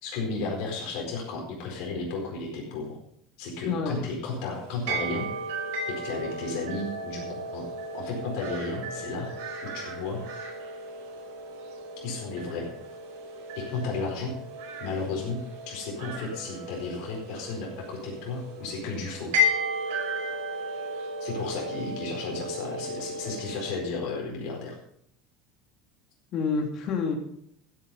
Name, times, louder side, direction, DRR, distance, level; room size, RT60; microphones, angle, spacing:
voice 1, 0.0-3.0 3.4-5.3 5.9-7.7 7.9-9.3 9.6-10.2 12.0-12.7 13.5-14.3 14.8-15.4 15.7-19.3 21.2-24.8, left 3 dB, 55° left, -1 dB, 4.5 m, -33 dB
voice 2, 3.6-4.0 26.3-27.2, left 5 dB, 35° left, 2 dB, 2.9 m, -28 dB
sound 1, 4.3-23.8, equal, 80° right, 5.1 m, -34 dB
14.5 x 9.0 x 5.4 m, 0.70 s
cardioid pair, 175°, 0 cm